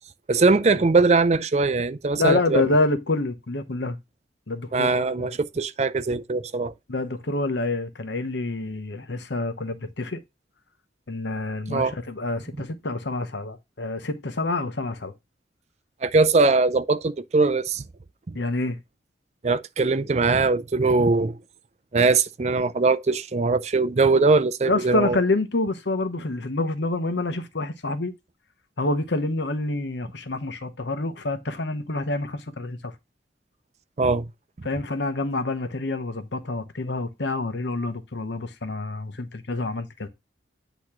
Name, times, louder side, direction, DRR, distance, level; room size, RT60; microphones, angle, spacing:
voice 1, 0.3-2.7 4.7-6.7 11.7-11.9 16.0-17.8 18.3-18.4 19.4-21.4 21.9-25.2 34.0-34.3, right 3 dB, 35° right, 0.4 m, -21 dB
voice 2, 2.2-4.0 4.5-5.4 6.9-10.2 11.1-15.1 18.3-18.8 24.6-28.1 28.8-32.9 34.6-40.1, left 2 dB, 70° left, 0.9 m, -27 dB
8.6 x 3.0 x 5.9 m
head